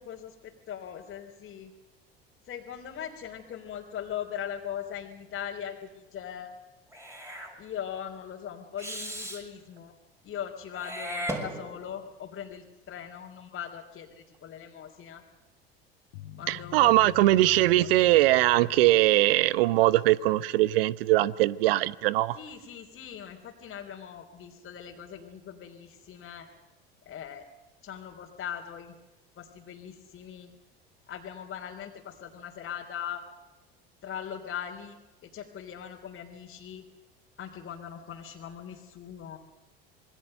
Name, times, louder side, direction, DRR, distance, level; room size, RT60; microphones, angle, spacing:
voice 1, 0.0-1.7 2.5-6.5 7.6-9.9 10.2-15.2 16.4-18.2 22.3-26.5 27.0-27.4 27.8-28.9 29.4-30.5 31.1-33.2 34.0-36.8 37.4-39.4, left 9 dB, 40° left, 3.5 m, -40 dB
Meow / Hiss, 6.9-7.5 8.8-9.4 10.7-12.0, right 1 dB, 10° right, 6.4 m, -36 dB
sound 1, 16.1-20.3, left 13 dB, 65° left, 2.3 m, -46 dB
voice 2, 16.5-22.4, right 16 dB, 70° right, 1.0 m, -21 dB
27.5 x 21.5 x 6.7 m
hypercardioid pair, 70°, 30 cm